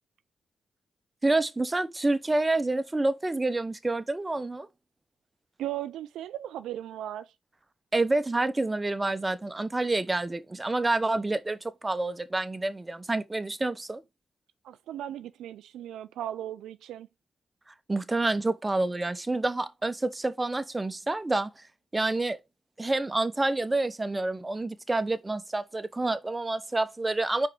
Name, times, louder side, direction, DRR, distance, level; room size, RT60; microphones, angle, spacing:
voice 1, 1.2-4.7 7.9-14.0 17.9-21.5 21.9-22.4 22.8-27.5, right 2 dB, 25° right, 1.0 m, -28 dB
voice 2, 5.6-7.3 14.6-17.1, right 12 dB, 85° right, 0.4 m, -37 dB
4.8 x 4.8 x 4.6 m
supercardioid pair, 45°, 0 cm